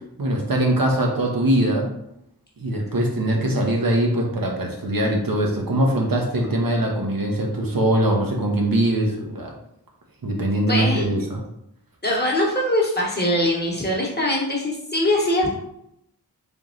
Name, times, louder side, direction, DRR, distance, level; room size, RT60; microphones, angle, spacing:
voice 1, 0.2-1.9 2.6-9.5 10.2-11.4, right 1 dB, 60° right, 0 dB, 0.9 m, -22 dB
voice 2, 10.7-11.0 12.0-15.5, left 1 dB, 25° left, -2 dB, 1.1 m, -22 dB
3.6 x 3.0 x 3.8 m, 0.76 s
wide cardioid pair, 75°, 39 cm